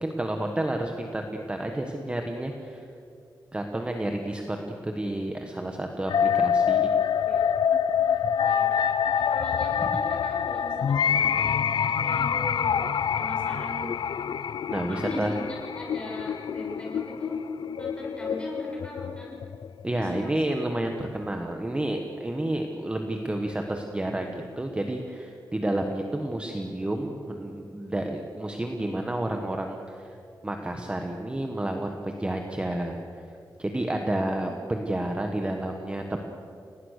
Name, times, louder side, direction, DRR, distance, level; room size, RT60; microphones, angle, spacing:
voice 1, 0.0-2.9 3.5-6.9 8.7-8.8 9.8-9.9 14.7-15.4 19.8-30.2 30.4-33.2 33.6-36.3, right 1 dB, 15° right, 3 dB, 1.4 m, -30 dB
sound 1, 6.1-20.1, left 7 dB, 75° left, 0.6 m, -26 dB
voice 2, 7.2-7.5 8.5-8.8 9.3-11.5 12.0-12.9 13.1-13.9 14.9-19.4 19.9-20.4, left 1 dB, 15° left, -3 dB, 6.5 m, -39 dB
29.5 x 18.5 x 6.7 m, 2.6 s
wide cardioid pair, 175°, 8 cm